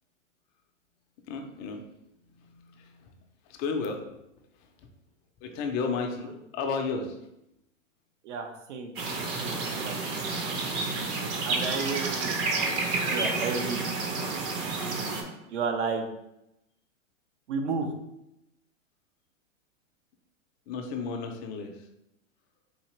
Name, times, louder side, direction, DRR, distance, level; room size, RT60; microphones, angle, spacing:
voice 1, 1.3-1.8 2.2-3.2 3.5-4.0 4.6-4.9 5.4-7.3 20.7-21.9, left 4 dB, 25° left, 4 dB, 0.4 m, -33 dB
voice 2, 8.2-8.9 9.4-9.9 11.5-12.4 13.1-13.9 15.5-16.1 17.5-17.9, right 4 dB, 65° right, 4 dB, 0.8 m, -32 dB
sound 1, 9.0-15.2, right 3 dB, 30° right, 0.7 m, -30 dB
4.0 x 2.8 x 3.0 m, 0.85 s
hypercardioid pair, 120°, 38 cm